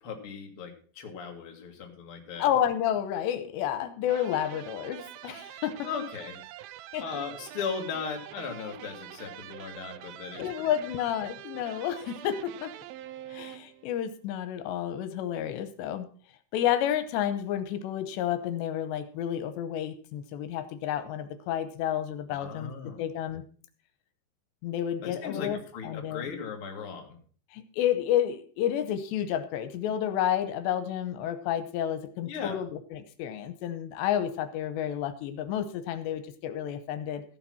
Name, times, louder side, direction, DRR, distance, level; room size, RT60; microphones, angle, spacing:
voice 1, 0.0-2.5 5.8-6.4 7.0-10.5 22.3-23.0 25.0-27.2 32.3-32.6, left 6 dB, 40° left, 2 dB, 2.3 m, -37 dB
voice 2, 2.4-5.9 6.9-7.0 10.4-12.7 13.3-16.1 16.5-23.4 24.6-25.6 25.8-26.3 27.5-37.2, left 10 dB, 85° left, 10 dB, 3.1 m, -30 dB
sound 1, 4.0-14.0, right 13 dB, 85° right, 2.1 m, -45 dB
14.5 x 7.1 x 5.9 m, 0.43 s
omnidirectional pair, 5.0 m